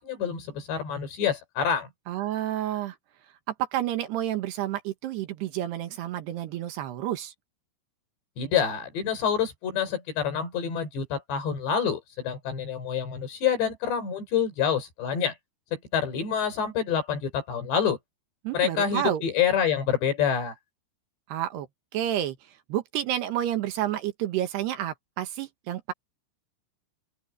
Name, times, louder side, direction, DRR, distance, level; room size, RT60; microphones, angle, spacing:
voice 1, 0.0-1.9 8.4-15.3 15.7-18.0 18.5-20.5, left 7 dB, 70° left, 7.2 m, -27 dB
voice 2, 2.1-3.0 3.6-7.3 18.4-19.2 21.3-21.7 21.9-22.4 22.7-25.9, right 12 dB, 70° right, 3.2 m, -30 dB
open air
omnidirectional pair, 5.1 m